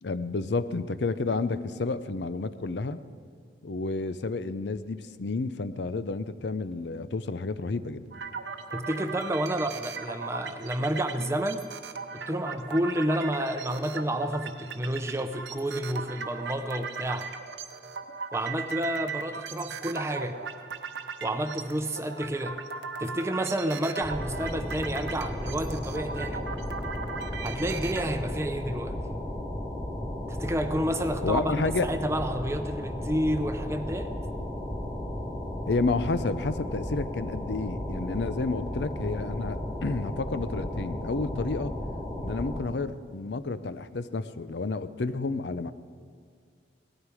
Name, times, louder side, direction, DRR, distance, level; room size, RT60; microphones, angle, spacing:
voice 1, 0.0-3.0 3.6-8.0 31.2-31.9 35.7-41.8 42.2-45.7, left 3 dB, 75° left, 13 dB, 0.6 m, -30 dB
sound 1, 8.1-28.0, right 5 dB, 85° right, 0.9 m, -38 dB
voice 2, 8.7-11.7 12.1-17.3 18.3-20.4 21.2-22.6 23.0-26.5 27.4-29.0 30.3-34.1, right 1 dB, 15° right, 8 dB, 0.6 m, -30 dB
sound 2, 24.0-42.6, left 1 dB, 20° left, 3.0 m, -34 dB
18.0 x 13.0 x 4.9 m, 2.1 s
head